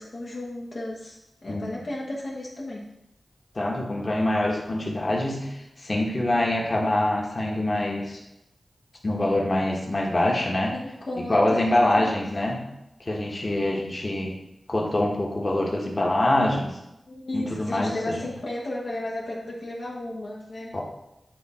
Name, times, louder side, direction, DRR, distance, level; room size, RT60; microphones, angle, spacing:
voice 1, 0.0-2.9 10.7-12.2 17.1-20.8, left 1 dB, 65° left, -4 dB, 1.2 m, -34 dB
voice 2, 3.5-8.2 9.0-10.7 11.2-12.6 13.0-14.3 14.7-16.8 17.3-18.3 20.7-20.8, left 1 dB, 40° left, -1 dB, 1.5 m, -25 dB
8.5 x 3.7 x 4.3 m, 0.87 s
wide cardioid pair, 65°, 0 cm